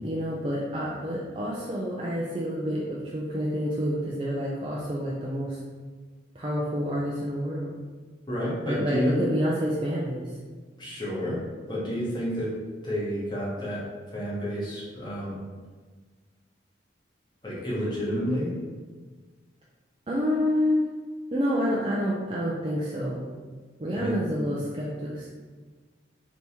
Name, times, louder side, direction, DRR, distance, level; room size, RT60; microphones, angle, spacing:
voice 1, 0.0-5.6 6.3-7.8 8.7-10.4 20.1-20.8 21.3-23.3 23.8-25.3, equal, 25° right, -5 dB, 0.4 m, -28 dB
voice 2, 8.3-9.2 10.8-11.4 11.7-12.5 12.8-13.8 14.1-15.4 17.4-18.5 24.0-24.2, equal, 25° left, -7 dB, 1.1 m, -30 dB
3.4 x 3.0 x 4.2 m, 1.4 s
head